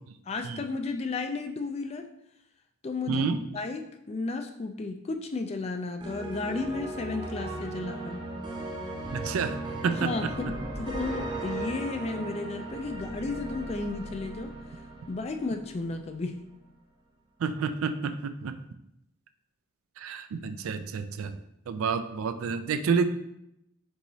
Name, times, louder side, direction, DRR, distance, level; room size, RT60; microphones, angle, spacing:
voice 1, 0.3-2.0 2.8-3.3 3.5-8.2 9.4-9.5 10.0-10.3 10.8-14.5 15.1-16.4, left 3 dB, 30° left, 6 dB, 0.3 m, -33 dB
voice 2, 3.1-3.4 9.1-10.1 17.4-18.5 20.0-21.4 21.7-23.0, right 5 dB, 80° right, 10 dB, 0.4 m, -29 dB
sound 1, 6.0-16.1, right 2 dB, 20° right, 0.5 m, -37 dB
4.7 x 4.0 x 2.7 m, 0.79 s
head